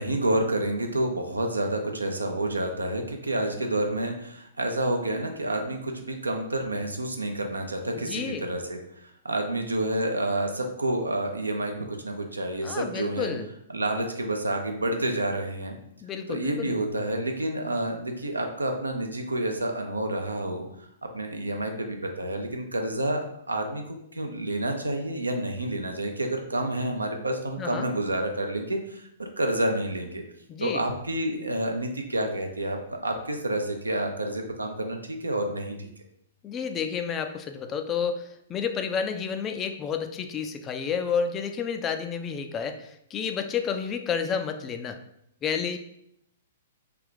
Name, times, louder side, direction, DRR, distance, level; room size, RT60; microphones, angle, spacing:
voice 1, 0.0-8.8 9.2-13.3 13.7-15.8 16.3-20.6 21.0-30.2 30.6-35.9, right 1 dB, 80° right, 4 dB, 0.5 m, -29 dB
voice 2, 8.0-8.5 12.6-13.5 16.0-16.8 27.6-27.9 30.5-30.9 36.4-45.0 45.4-45.8, left 6 dB, 25° left, 7 dB, 0.3 m, -30 dB
3.3 x 2.4 x 3.7 m, 0.74 s
figure-of-eight pair, 110°, 0 cm